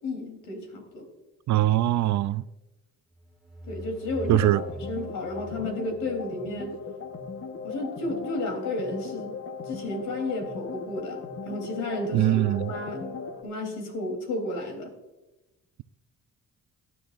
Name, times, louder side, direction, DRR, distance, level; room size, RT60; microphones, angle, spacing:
voice 1, 0.0-1.1 3.7-6.7 7.6-9.3 9.7-13.2 13.4-14.9, left 2 dB, 85° left, 3.6 m, -33 dB
voice 2, 1.5-2.4 4.3-4.6 12.1-12.7, right 15 dB, 70° right, 0.5 m, -22 dB
sound 1, 3.2-6.8, left 1 dB, ahead, 2.3 m, -41 dB
sound 2, 4.2-13.4, left 5 dB, 45° left, 1.3 m, -38 dB
18.5 x 11.0 x 2.6 m
cardioid pair, 90°, 30 cm